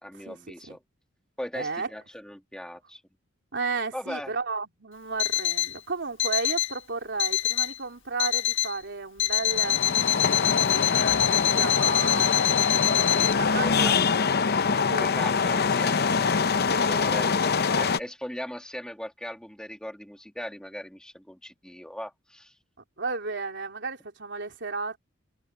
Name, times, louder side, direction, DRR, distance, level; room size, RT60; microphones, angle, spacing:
voice 1, 0.0-0.8 1.4-3.0 3.9-4.3 13.5-14.0 14.9-17.3 17.8-22.5, equal, 5° left, 2.6 m, -39 dB
voice 2, 1.5-1.9 3.5-9.8 11.0-14.2 14.7-15.1 16.7-16.9 23.0-25.0, right 4 dB, 65° right, 3.6 m, -33 dB
Alarm, 5.2-5.8 6.2-6.8 7.2-7.8 8.2-8.8 9.2-13.3, left 12 dB, 70° left, 1.5 m, -25 dB
sound 1, 9.5-18.0, left 5 dB, 55° left, 0.7 m, -24 dB
head